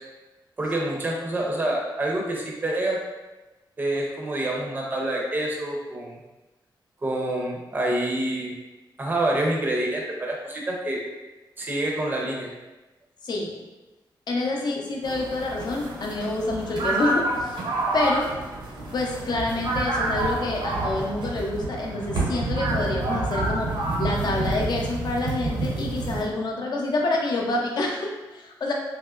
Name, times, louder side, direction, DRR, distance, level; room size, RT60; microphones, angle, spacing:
voice 1, 0.6-3.0 3.8-6.1 7.0-8.5 9.0-11.0 11.6-12.5, right 1 dB, 25° right, -1 dB, 0.5 m, -27 dB
voice 2, 14.3-17.6 17.9-18.3 18.9-23.7 24.0-28.7, left 2 dB, 60° left, 0 dB, 0.5 m, -27 dB
sound 1, 15.0-26.2, right 2 dB, 70° right, 0.6 m, -28 dB
3.3 x 2.8 x 2.4 m, 1.1 s
wide cardioid pair, 150°, 8 cm